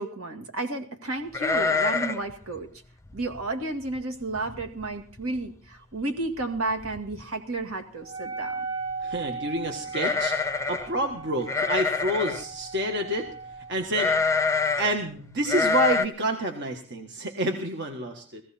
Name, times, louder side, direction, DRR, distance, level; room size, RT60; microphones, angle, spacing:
voice 1, 0.0-2.7 3.1-8.6, right 2 dB, 70° right, 5 dB, 2.2 m, -32 dB
sound 1, 1.3-2.3 2.6-2.7 3.1-3.4 3.9-4.0 4.3-4.8 5.2-5.3 6.4-6.5 6.8-7.2 9.9-10.9 11.5-12.4 13.9-14.9 15.4-16.0, left 4 dB, 15° left, 0.6 m, -26 dB
Wind instrument woodwind instrument, 8.0-13.8, right 4 dB, 20° right, 1.2 m, -37 dB
voice 2, 9.0-10.3 10.7-13.3 13.7-14.1 14.8-18.4, right 1 dB, 50° right, 4 dB, 1.6 m, -28 dB
17.5 x 15.5 x 4.3 m, 0.43 s
head